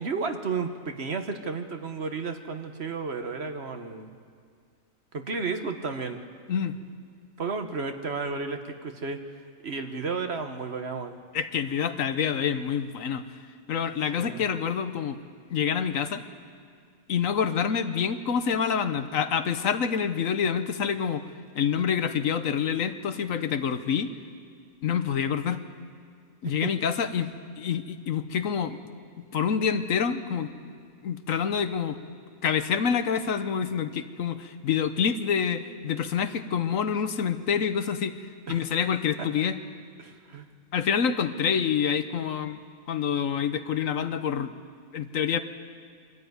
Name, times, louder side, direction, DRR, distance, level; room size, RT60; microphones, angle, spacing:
voice 1, 0.0-4.1 5.1-6.2 7.4-9.2 9.6-11.2 13.8-14.4 26.6-26.7 38.5-38.6 40.0-40.5, right 4 dB, 50° right, 6 dB, 1.4 m, -32 dB
voice 2, 11.3-13.4 13.7-15.2 15.5-16.2 17.1-21.2 21.5-24.1 24.8-25.6 26.4-28.8 29.3-30.5 31.0-32.0 32.4-38.2 38.5-39.5 40.7-42.6 42.9-44.5 44.9-45.4, left 7 dB, 70° left, 10 dB, 1.2 m, -27 dB
24.0 x 13.5 x 9.5 m, 2.1 s
omnidirectional pair, 1.5 m